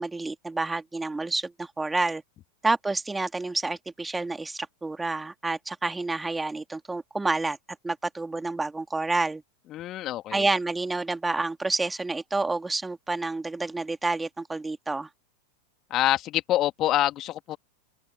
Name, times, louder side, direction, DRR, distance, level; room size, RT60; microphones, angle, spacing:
voice 1, 0.0-2.2 2.6-7.6 7.8-9.4 10.3-15.1, right 3 dB, 10° right, 2.5 m, -29 dB
voice 2, 9.7-10.5 15.9-17.6, left 14 dB, 35° left, 2.7 m, -26 dB
open air
figure-of-eight pair, 90°, 0 cm